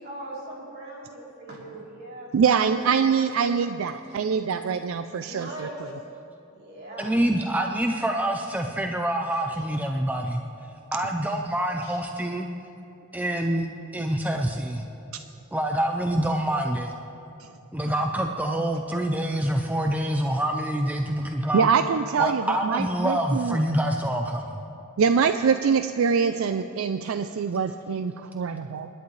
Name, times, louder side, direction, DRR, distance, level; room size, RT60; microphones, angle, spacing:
voice 1, 0.0-2.3 2.6-2.8 3.0-3.6 4.1-4.2 4.9-5.9 6.5-7.1 9.3-9.7 11.8-12.0 27.0-27.2, right 1 dB, 50° right, -5 dB, 3.5 m, -41 dB
voice 2, 2.3-5.7 17.4-17.5 21.5-23.6 25.0-28.9, right 6 dB, 75° right, 9 dB, 0.4 m, -24 dB
voice 3, 7.0-10.4 10.9-12.5 13.1-13.7 13.9-14.9 15.5-16.9 17.7-21.7 22.2-24.6, right 1 dB, 10° right, 3 dB, 0.5 m, -26 dB
28.0 x 11.0 x 3.2 m, 2.8 s
head